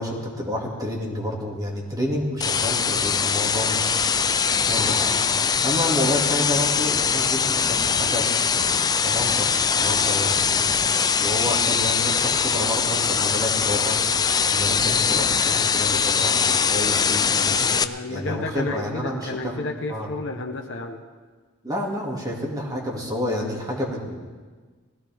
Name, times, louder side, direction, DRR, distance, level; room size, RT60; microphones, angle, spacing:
voice 1, 0.0-4.0 4.6-5.2 5.6-10.5 11.2-14.0 14.5-17.7 18.1-20.1 21.6-24.3, left 1 dB, 15° right, -1 dB, 2.4 m, -29 dB
sound 1, 2.4-17.8, left 6 dB, 20° left, 0.4 m, -22 dB
voice 2, 17.5-21.0, left 2 dB, 60° left, 4 dB, 1.1 m, -32 dB
20.0 x 15.5 x 3.6 m, 1.4 s
head